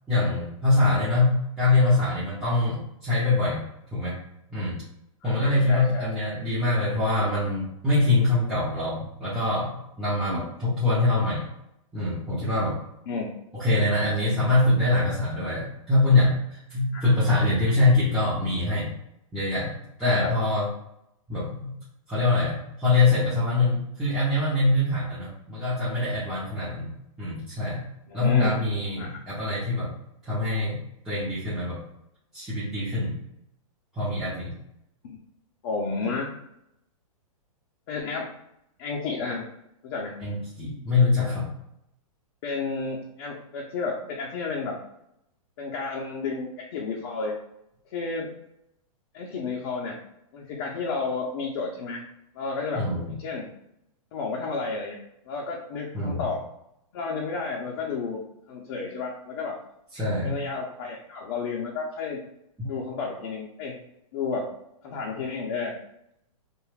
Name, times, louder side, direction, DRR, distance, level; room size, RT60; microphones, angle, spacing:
voice 1, 0.1-3.6 3.9-4.1 4.5-4.8 5.2-11.5 11.9-12.8 13.5-18.9 19.3-19.7 20.0-20.7 21.3-21.7 22.1-26.9 27.2-27.8 28.1-29.9 30.2-30.8 31.0-31.8 32.3-33.2 33.9-34.5 40.2-41.5 52.7-53.1 55.9-56.2 59.9-60.4 62.6-62.7, left 2 dB, ahead, -13 dB, 0.7 m, -24 dB
voice 2, 5.2-6.1 10.3-10.4 13.1-13.3 16.9-17.1 20.0-20.3 28.1-28.6 29.0-29.2 35.0-35.2 35.6-36.3 37.9-38.3 38.8-39.4 39.8-40.1 42.4-44.8 45.6-47.3 47.9-48.3 49.1-50.0 50.3-52.0 52.3-53.5 54.1-55.0 55.3-56.4 56.9-58.2 58.5-59.6 60.2-62.2 62.6-63.7 64.1-64.5 64.8-65.7, left 4 dB, 45° left, -2 dB, 0.6 m, -31 dB
2.5 x 2.3 x 3.2 m, 0.80 s
hypercardioid pair, 145°, 18 cm